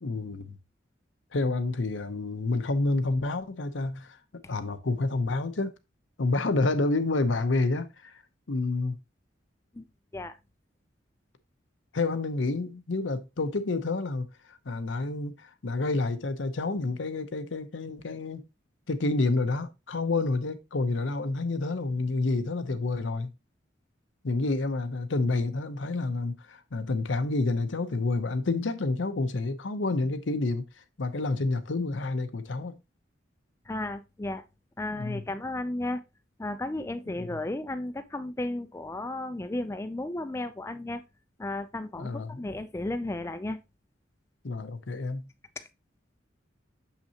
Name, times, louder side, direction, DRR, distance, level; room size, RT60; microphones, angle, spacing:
voice 1, 0.0-0.6 1.3-4.2 4.5-5.7 6.2-8.1 8.5-8.9 11.9-18.4 18.9-23.3 24.2-30.6 31.0-32.8 35.0-35.2 42.0-42.4 44.4-45.3, left 3 dB, 75° left, 0.7 m, -29 dB
voice 2, 33.7-34.4 34.8-36.0 36.4-41.0 41.4-43.6 45.6-45.7, left 2 dB, 15° left, 0.4 m, -34 dB
6.7 x 5.7 x 2.8 m
head